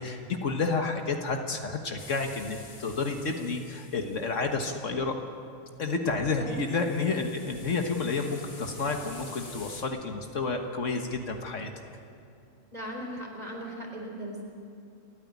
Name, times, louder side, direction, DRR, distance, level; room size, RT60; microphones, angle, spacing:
voice 1, 0.0-5.1 5.8-11.7, left 4 dB, 60° left, 4 dB, 1.6 m, -30 dB
sound 1, 2.0-4.5 6.5-9.8, left 3 dB, 45° left, 2.0 m, -49 dB
voice 2, 12.7-14.4, equal, 30° right, -1 dB, 4.0 m, -38 dB
29.5 x 10.0 x 9.4 m, 2.5 s
omnidirectional pair, 1.4 m